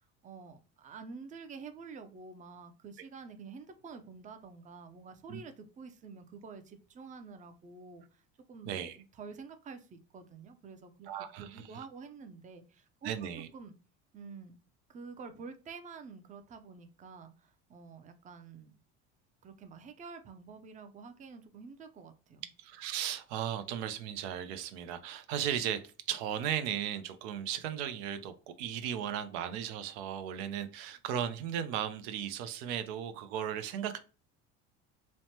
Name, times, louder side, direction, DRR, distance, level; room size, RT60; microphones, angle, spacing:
voice 1, 0.0-8.2 8.5-11.1 11.4-13.7 14.1-14.6 14.9-18.7 19.4-22.5, right 5 dB, 25° right, 8 dB, 0.4 m, -49 dB
voice 2, 8.7-9.0 11.1-11.6 13.0-13.5 22.6-25.8 26.1-34.0, right 9 dB, 85° right, 10 dB, 0.5 m, -36 dB
3.1 x 2.1 x 2.8 m, 0.34 s
supercardioid pair, 95°, 32 cm